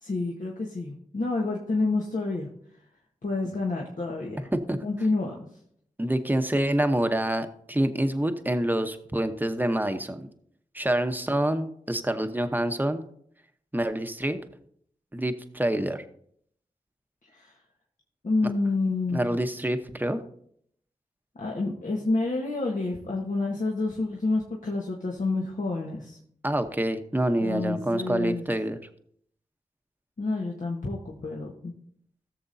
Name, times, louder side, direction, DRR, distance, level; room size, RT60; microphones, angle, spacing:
voice 1, 0.0-2.5 3.2-4.5 4.8-5.4 17.3-17.5 18.2-19.2 21.3-26.2 27.4-28.4 30.2-31.7, left 3 dB, 65° left, -2 dB, 1.4 m, -29 dB
voice 2, 4.5-4.8 6.0-10.3 10.7-13.1 13.7-14.4 15.1-16.0 18.4-18.5 19.1-20.2 26.4-28.8, right 1 dB, 15° right, 8 dB, 1.0 m, -27 dB
17.5 x 6.9 x 2.7 m, 0.66 s
cardioid pair, 50°, 14 cm